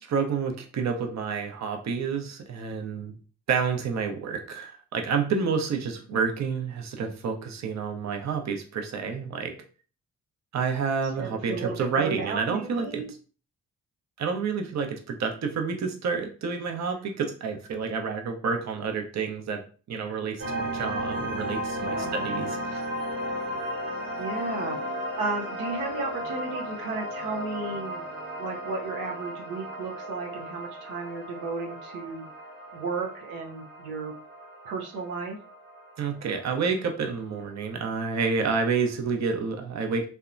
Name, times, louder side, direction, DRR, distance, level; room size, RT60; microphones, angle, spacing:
voice 1, 0.0-3.2 3.5-9.6 10.5-13.0 14.2-22.8 36.0-40.1, right 5 dB, 45° right, 4 dB, 0.6 m, -29 dB
voice 2, 11.2-13.1 21.8-22.6 24.2-24.8 25.2-28.1 28.4-32.3 32.7-34.1 34.6-35.4, right 4 dB, 85° right, 1 dB, 0.5 m, -34 dB
sound 1, 20.4-37.4, equal, 65° right, 1.2 m, -35 dB
2.7 x 2.2 x 2.4 m, 0.38 s
hypercardioid pair, 45°, 37 cm